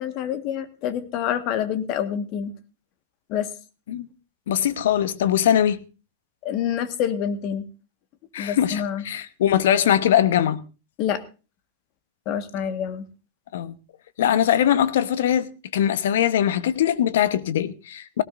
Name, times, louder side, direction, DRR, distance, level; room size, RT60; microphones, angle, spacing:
voice 1, 0.0-2.5 3.3-3.5 6.4-7.7 8.4-9.0 11.0-11.2 12.2-13.0, left 9 dB, 50° left, 1.6 m, -27 dB
voice 2, 4.5-5.8 8.3-10.6 13.5-13.7 14.2-18.2, left 10 dB, 70° left, 1.0 m, -21 dB
18.0 x 17.0 x 2.6 m
hypercardioid pair, 100°, 0 cm